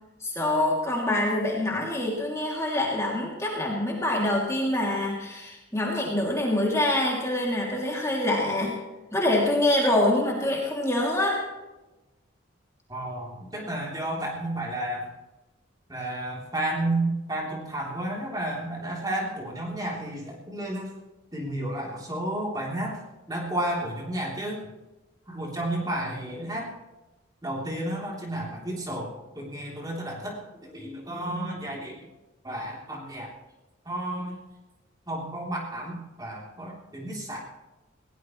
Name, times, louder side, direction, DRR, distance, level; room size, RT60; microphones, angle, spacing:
voice 1, 0.2-8.8 9.1-11.4, left 1 dB, 15° left, -3 dB, 2.8 m, -25 dB
voice 2, 12.9-15.1 15.9-20.9 21.3-23.0 23.3-24.6 25.3-26.7 27.4-32.0 32.4-33.3 33.8-34.4 35.1-37.4, right 1 dB, 20° right, -3 dB, 3.4 m, -32 dB
21.0 x 17.5 x 3.2 m, 1.1 s
head